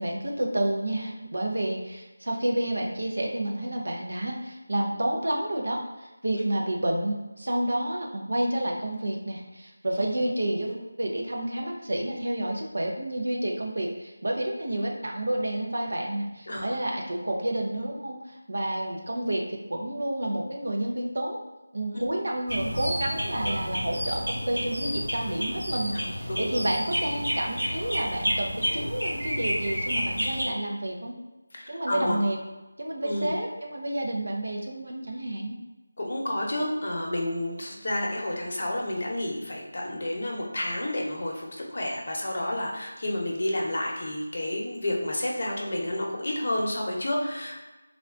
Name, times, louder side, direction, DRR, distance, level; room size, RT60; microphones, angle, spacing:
voice 1, 0.0-21.4 21.7-31.2 31.7-32.4 32.8-35.6, right 1 dB, 70° right, 0 dB, 0.6 m, -30 dB
sound 1, 22.5-30.4, equal, 90° right, 1.5 m, -30 dB
voice 2, 25.9-26.6 31.5-32.2 33.0-33.3 36.0-47.6, left 1 dB, 50° left, -1 dB, 0.7 m, -30 dB
3.6 x 2.2 x 2.4 m, 1.1 s
figure-of-eight pair, 165°, 0 cm